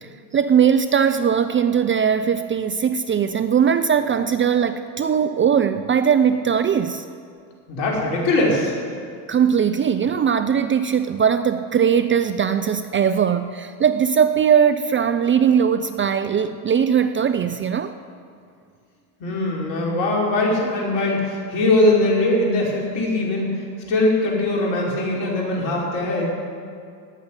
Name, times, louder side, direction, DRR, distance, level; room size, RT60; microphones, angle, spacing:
voice 1, 0.0-7.1 9.3-17.9, right 7 dB, 25° right, 10 dB, 0.6 m, -20 dB
voice 2, 7.7-8.7 19.2-23.5 23.9-26.3, left 2 dB, 60° left, -3 dB, 5.1 m, -21 dB
17.5 x 7.2 x 9.9 m, 2.3 s
hypercardioid pair, 85°, 50 cm